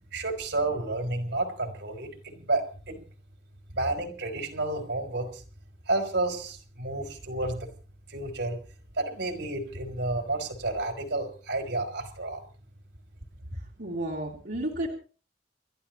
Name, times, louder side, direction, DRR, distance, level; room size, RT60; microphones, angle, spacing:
voice 1, 0.1-3.0 3.7-5.4 5.9-7.7 8.1-8.6 9.0-12.4, right 2 dB, 85° right, 5 dB, 3.9 m, -31 dB
voice 2, 13.8-14.9, right 1 dB, 65° right, -3 dB, 3.2 m, -32 dB
29.5 x 13.0 x 3.1 m, 0.39 s
head